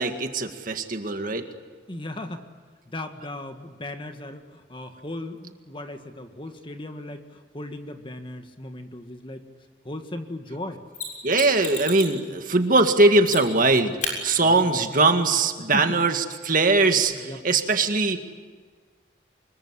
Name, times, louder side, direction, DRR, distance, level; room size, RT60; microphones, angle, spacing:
voice 1, 0.0-1.5 11.2-18.2, right 3 dB, 45° right, 6 dB, 2.0 m, -21 dB
voice 2, 1.9-2.4 2.9-9.5 9.8-10.8 14.4-14.8 15.6-15.9 17.1-17.4, left 1 dB, 25° left, 6 dB, 1.9 m, -37 dB
Mechanisms, 10.9-12.2 13.2-13.7 14.0-14.2 16.9-17.0, left 4 dB, 45° left, 6.9 m, -32 dB
25.5 x 22.5 x 9.9 m, 1.5 s
head